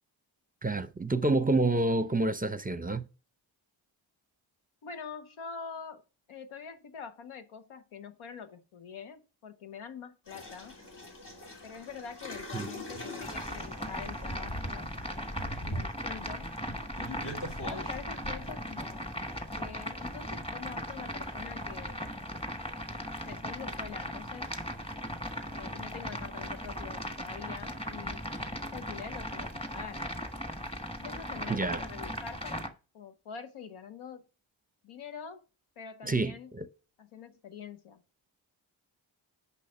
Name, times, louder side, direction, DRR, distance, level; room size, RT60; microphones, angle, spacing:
voice 1, 0.6-3.1 12.5-12.7 31.5-31.8 36.0-36.7, right 2 dB, 20° right, 0.6 m, -28 dB
voice 2, 4.8-6.0 6.3-10.8 11.6-14.9 15.6-16.5 17.7-19.1 19.6-22.0 23.2-24.5 25.5-28.2 28.6-30.0 31.0-32.7 32.9-34.3 34.8-35.4 35.8-36.5 37.0-38.0, left 6 dB, 85° left, 1.0 m, -45 dB
sound 1, 10.3-18.5, equal, 55° left, 3.1 m, -41 dB
Bubbling Stew, 13.2-32.7, equal, 10° left, 1.4 m, -38 dB
6.3 x 5.7 x 5.6 m
supercardioid pair, 40°, 48 cm